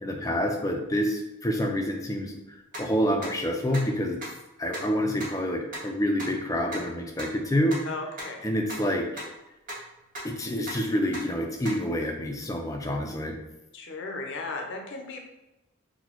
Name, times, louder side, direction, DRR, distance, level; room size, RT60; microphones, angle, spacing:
voice 1, 0.0-2.4 2.8-4.2 4.6-7.8 8.4-9.2 10.2-13.3, equal, 15° left, 2 dB, 0.4 m, -27 dB
sound 1, 2.7-2.8 3.2-3.3 3.7-3.8 4.2-4.3 4.7-4.8 5.2-5.3 5.7-5.8 6.2-6.3 6.7-6.8 7.2-7.3 7.7-7.8 8.2-8.3 8.7-8.8 9.2-9.3 9.7-9.8 10.1-10.2 10.7-10.8 11.1-11.2 11.6-11.7, right 1 dB, 40° right, 0.9 m, -36 dB
voice 2, 7.9-8.4 13.7-15.2, left 3 dB, 60° left, 2 dB, 0.6 m, -35 dB
4.0 x 2.2 x 2.9 m, 0.94 s
head